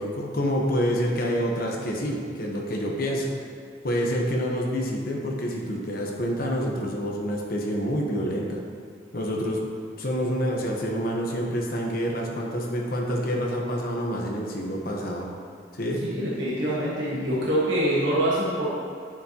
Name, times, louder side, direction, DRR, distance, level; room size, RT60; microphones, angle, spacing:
voice 1, 0.0-3.3 3.8-8.6 9.1-9.6 10.0-15.3 15.7-16.0, equal, 50° left, -1 dB, 1.1 m, -27 dB
voice 2, 16.0-18.7, right 1 dB, 80° right, -7 dB, 1.6 m, -25 dB
10.0 x 7.0 x 2.9 m, 2.3 s
head